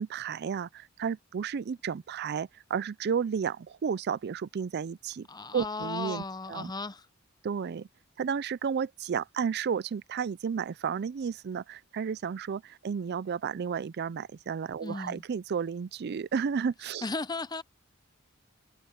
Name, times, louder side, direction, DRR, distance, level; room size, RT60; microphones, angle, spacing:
voice 1, 0.0-5.3 5.5-6.7 7.4-7.9 8.2-17.0, right 6 dB, 50° right, 0.4 m, -32 dB
voice 2, 5.3-7.1 14.8-15.2 17.0-17.6, left 3 dB, 20° left, 0.7 m, -35 dB
head